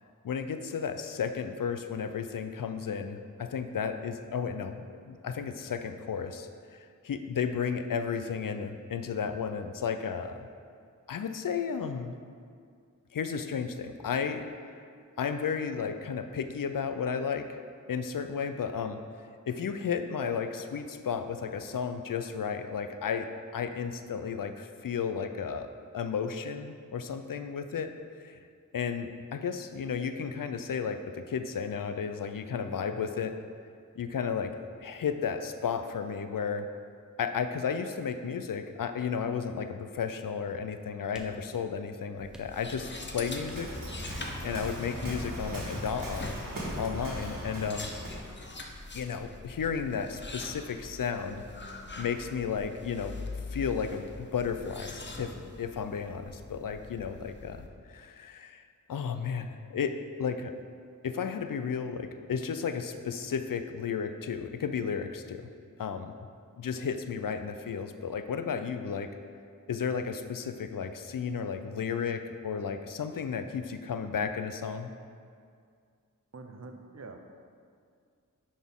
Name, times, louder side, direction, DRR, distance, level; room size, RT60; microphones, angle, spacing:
voice 1, 0.2-10.5 11.1-12.1 13.1-14.4 15.2-17.6 17.9-19.0 19.5-25.7 25.9-27.9 28.2-28.4 28.7-33.3 34.0-34.5 34.8-36.7 37.2-43.7 44.4-46.3 46.8-47.9 48.9-51.4 52.0-53.1 53.5-58.6 58.9-60.5 61.0-65.4 65.8-66.1 66.6-69.1 69.7-74.9, left 6 dB, 80° left, 8 dB, 0.5 m, -33 dB
sound 1, 41.1-41.9 42.3-42.9 43.5-44.1 44.6-45.1, equal, ahead, 0.6 m, -53 dB
sound 2, 42.2-57.7, left 2 dB, 35° left, 0.6 m, -43 dB
Waves surf, 43.1-48.3, right 1 dB, 80° right, 1.7 m, -38 dB
voice 2, 76.3-77.2, right 3 dB, 50° right, 5 dB, 0.6 m, -45 dB
9.4 x 4.2 x 3.6 m, 2.2 s
wide cardioid pair, 65°, 33 cm